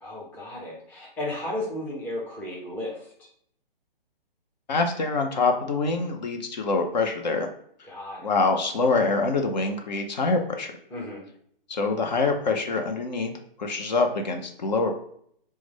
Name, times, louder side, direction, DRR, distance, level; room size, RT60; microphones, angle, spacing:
voice 1, 0.0-3.1 7.8-8.3 10.9-11.2, left 1 dB, 5° left, -5 dB, 0.6 m, -34 dB
voice 2, 4.7-7.5 8.2-10.7 11.7-13.3 13.6-15.0, left 3 dB, 50° left, 4 dB, 0.6 m, -25 dB
4.6 x 2.1 x 3.5 m, 0.66 s
figure-of-eight pair, 130°, 29 cm